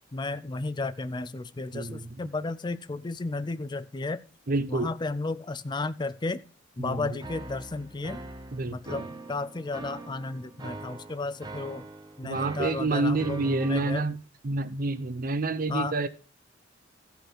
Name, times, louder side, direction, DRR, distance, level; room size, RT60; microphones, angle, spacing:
voice 1, 0.1-4.2 4.7-6.4 6.8-8.2 8.7-11.9 12.2-14.0 15.7-16.0, left 3 dB, 25° left, 12 dB, 0.4 m, -33 dB
voice 2, 4.5-4.9 6.8-7.1 8.5-9.0 12.2-14.2 14.4-16.1, right 3 dB, 45° right, 12 dB, 0.7 m, -28 dB
sound 1, 7.2-14.0, right 3 dB, 20° right, 1.1 m, -43 dB
14.5 x 5.6 x 5.8 m, 0.37 s
head